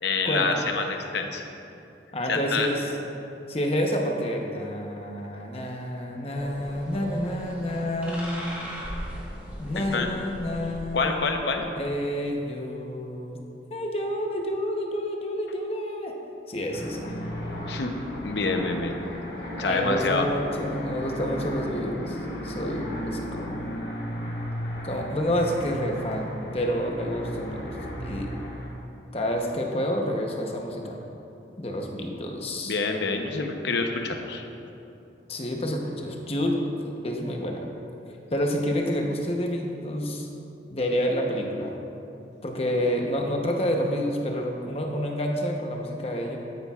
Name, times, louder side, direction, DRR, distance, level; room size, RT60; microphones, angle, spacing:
voice 1, 0.0-1.5 2.3-2.7 9.7-10.1 10.9-11.6 17.7-17.9 18.2-19.0 19.5-20.3 32.5-34.4, left 4 dB, 70° left, 4 dB, 0.8 m, -27 dB
voice 2, 2.1-2.8 3.5-8.6 9.6-11.2 11.8-13.4 13.7-16.1 16.5-17.1 19.6-23.7 24.8-28.3 29.1-31.0 31.6-32.8 35.3-37.6 38.3-40.3 40.7-41.7 42.4-46.4, equal, 35° left, 1 dB, 0.9 m, -29 dB
sound 1, 6.3-11.7, equal, 10° right, 1.5 m, -39 dB
sound 2, 16.7-28.7, equal, 55° left, 2.1 m, -35 dB
12.0 x 9.9 x 2.4 m, 2.7 s
head